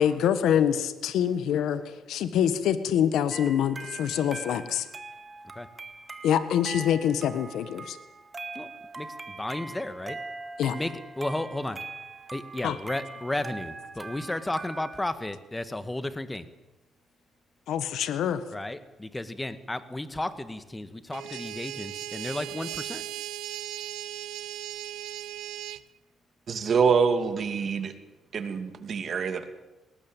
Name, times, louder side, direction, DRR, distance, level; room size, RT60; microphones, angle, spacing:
voice 1, 0.0-4.9 6.2-8.0 10.6-10.7 12.6-12.7 17.7-18.4, left 9 dB, 80° left, 1.5 m, -25 dB
sound 1, 3.3-15.0, right 3 dB, 30° right, 2.0 m, -42 dB
voice 2, 8.5-10.2 10.7-11.8 12.3-16.5 18.5-23.1, left 1 dB, 15° left, 1.8 m, -33 dB
sound 2, 21.1-25.8, right 13 dB, 90° right, 0.7 m, -37 dB
voice 3, 26.5-27.9 28.3-29.5, right 5 dB, 50° right, 2.6 m, -25 dB
19.5 x 19.0 x 9.1 m
cardioid pair, 90°, 0 cm